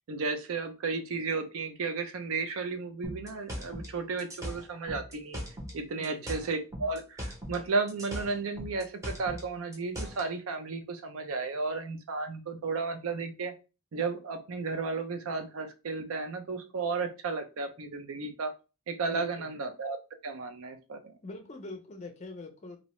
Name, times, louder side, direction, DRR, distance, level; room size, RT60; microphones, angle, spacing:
voice 1, 0.1-5.4 5.7-13.5 13.9-18.5 18.9-20.0 20.2-21.0, right 4 dB, 70° right, 7 dB, 0.4 m, -33 dB
sound 1, 3.0-5.8 6.0-7.6 7.9-10.3, equal, 15° right, 0.6 m, -39 dB
voice 2, 6.0-6.3 19.1-19.5 21.2-22.8, left 2 dB, 30° left, 5 dB, 0.5 m, -43 dB
2.6 x 2.0 x 3.0 m, 0.30 s
head